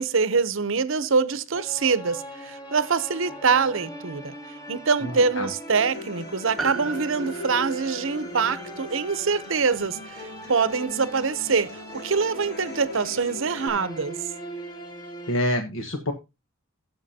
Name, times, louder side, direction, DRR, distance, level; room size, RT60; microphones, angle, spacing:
voice 1, 0.0-4.3 4.7-14.2, right 5 dB, 65° right, 0.8 m, -24 dB
sound 1, 1.5-15.3, right 1 dB, 20° left, 1.6 m, -40 dB
voice 2, 5.0-5.5 15.3-16.1, left 1 dB, 70° left, 1.3 m, -27 dB
Human voice / Acoustic guitar, 5.7-13.7, left 2 dB, 50° left, 3.4 m, -41 dB
Piano, 6.6-11.2 11.4-11.5, right 5 dB, ahead, 1.3 m, -38 dB
16.0 x 7.3 x 2.8 m
head